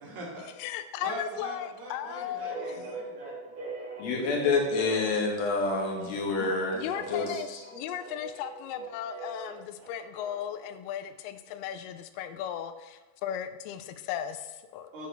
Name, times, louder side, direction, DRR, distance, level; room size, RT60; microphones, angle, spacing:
voice 1, 0.0-0.5 1.0-3.7 4.1-4.3 14.9-15.1, equal, 75° right, -4 dB, 3.9 m, -41 dB
voice 2, 0.6-2.7 6.4-14.9, left 10 dB, 85° left, 9 dB, 2.5 m, -36 dB
sound 1, 2.4-10.6, right 3 dB, 50° right, 3.6 m, -42 dB
voice 3, 4.0-7.6, left 3 dB, 60° left, 0 dB, 1.9 m, -28 dB
8.3 x 6.6 x 3.4 m, 1.2 s
omnidirectional pair, 4.5 m